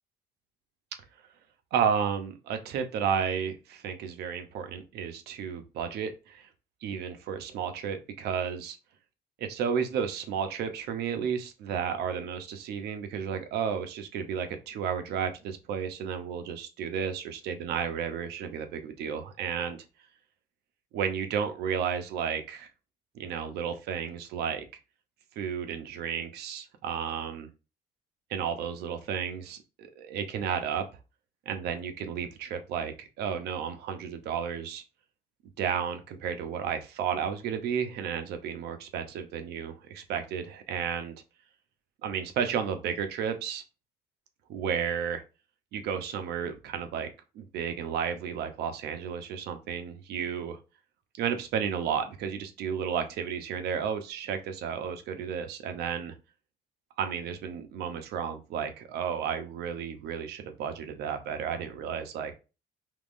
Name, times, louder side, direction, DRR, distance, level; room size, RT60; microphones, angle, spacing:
voice 1, 1.7-6.5 6.8-8.8 9.4-19.8 20.9-22.7 23.1-24.6 25.4-27.5 28.3-30.8 31.5-34.8 35.6-41.1 42.0-43.6 44.5-45.2 45.7-47.1 47.3-50.6 51.2-56.1 57.0-62.3, right 7 dB, 75° right, 8 dB, 0.7 m, -32 dB
3.6 x 2.9 x 2.5 m, 0.31 s
cardioid pair, 110°, 17 cm